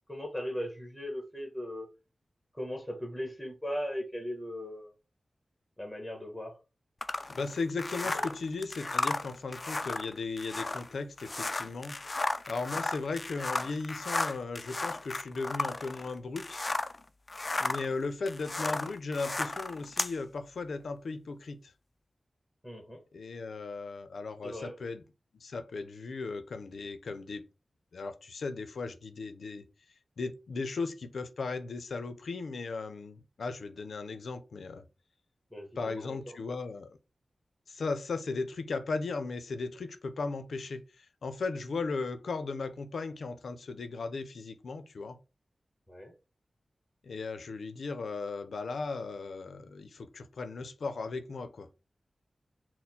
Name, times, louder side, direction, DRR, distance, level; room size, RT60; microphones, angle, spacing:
voice 1, 0.1-1.9 2.5-4.9 5.8-6.6 8.1-8.2 18.6-18.8 22.6-23.0 24.4-24.8 35.5-36.4 45.9-46.1, equal, 5° left, 1.2 m, -38 dB
sound 1, 7.0-17.0 17.3-20.2, left 2 dB, 40° left, 0.3 m, -34 dB
voice 2, 7.3-12.0 12.5-16.6 17.6-21.7 23.1-25.0 25.4-27.4 27.9-29.6 30.2-34.8 35.8-37.0 37.7-45.2 47.0-51.7, left 4 dB, 90° left, 0.5 m, -36 dB
4.2 x 2.1 x 4.1 m
wide cardioid pair, 75°, 0 cm